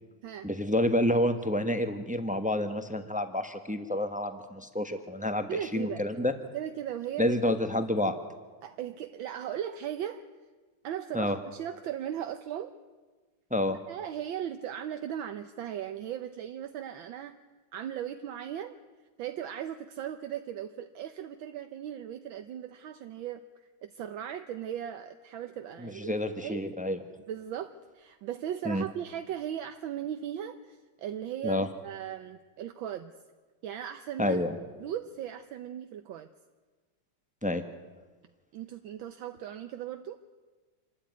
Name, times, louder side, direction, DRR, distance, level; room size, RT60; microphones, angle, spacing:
voice 1, 0.4-6.3 7.2-8.1 11.1-11.4 13.5-13.8 25.8-27.0 28.6-28.8 31.4-31.7 34.2-34.6 37.4-37.6, left 1 dB, 5° right, 8 dB, 0.8 m, -29 dB
voice 2, 5.5-6.0 6.5-7.4 8.6-10.2 10.8-12.7 13.9-17.4 17.7-18.7 19.2-23.4 23.8-26.7 27.3-33.1 33.6-34.4 34.8-36.3 38.5-40.2, right 10 dB, 75° right, 8 dB, 1.6 m, -37 dB
27.0 x 13.0 x 9.4 m, 1.4 s
omnidirectional pair, 2.2 m